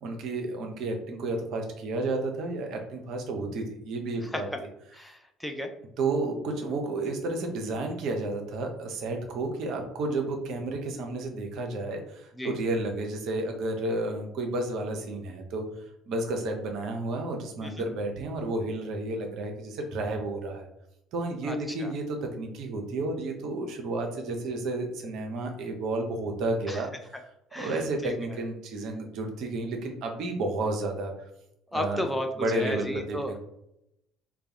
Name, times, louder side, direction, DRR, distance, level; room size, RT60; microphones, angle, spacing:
voice 1, 0.0-4.5 6.0-15.7 16.1-20.7 21.1-27.2 27.5-31.1 31.7-32.1 32.4-33.4, right 2 dB, 55° right, 3 dB, 0.5 m, -31 dB
voice 2, 4.9-5.7 12.4-12.5 17.6-17.8 21.4-21.6 21.8-21.9 26.7-26.8 27.5-28.1 31.7-32.3 32.5-33.3, left 1 dB, 5° left, 4 dB, 0.3 m, -33 dB
2.3 x 2.0 x 2.6 m, 0.82 s
figure-of-eight pair, 55°, 0 cm